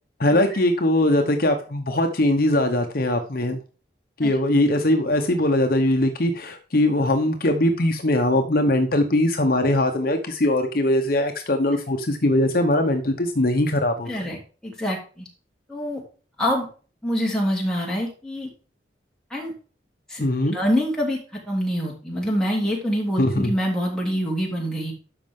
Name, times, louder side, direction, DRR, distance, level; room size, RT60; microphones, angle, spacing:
voice 1, 0.2-3.6 4.2-14.1 20.2-20.6 23.2-23.5, left 1 dB, 50° left, 4 dB, 0.9 m, -21 dB
voice 2, 14.1-14.4 14.6-15.3 15.7-16.0 16.4-16.7 17.0-18.5 19.3-19.5 20.1-20.2 20.5-24.9, equal, 5° left, -4 dB, 3.0 m, -25 dB
13.0 x 5.4 x 3.6 m, 0.37 s
head